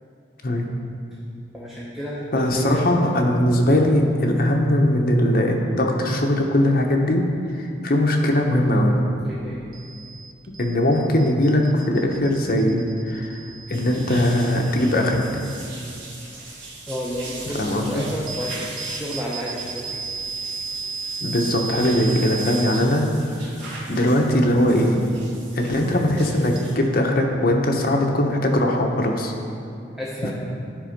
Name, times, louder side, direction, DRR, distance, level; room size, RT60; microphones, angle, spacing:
voice 1, 1.5-2.8 9.2-9.7 16.9-19.9 29.9-30.3, equal, ahead, -7 dB, 0.7 m, -31 dB
voice 2, 2.3-7.3 7.6-9.0 10.6-13.4 13.7-15.2 17.5-18.0 21.2-23.1 23.4-23.6 23.9-25.0 25.5-29.3 30.2-30.3, left 1 dB, 50° left, 1 dB, 0.9 m, -20 dB
sound 1, 8.9-26.6, right 4 dB, 50° right, 0.5 m, -37 dB
sound 2, 13.7-26.7, right 2 dB, 80° right, 1.9 m, -40 dB
10.5 x 4.3 x 5.2 m, 2.5 s
head